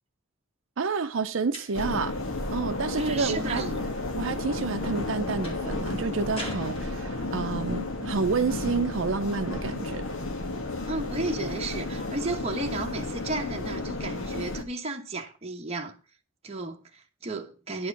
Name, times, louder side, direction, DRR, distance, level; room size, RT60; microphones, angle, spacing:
voice 1, 0.8-2.1 2.5-3.6 4.2-10.0, right 4 dB, 75° right, 0.6 m, -29 dB
sound 1, 1.5-2.1 5.4-5.7 6.4-7.4, equal, 30° left, 2.9 m, -40 dB
sound 2, 1.7-14.6, left 2 dB, 85° left, 1.5 m, -32 dB
voice 2, 3.0-3.8 10.9-15.9 16.4-17.9, right 2 dB, 30° right, 1.2 m, -33 dB
10.5 x 4.8 x 7.1 m
head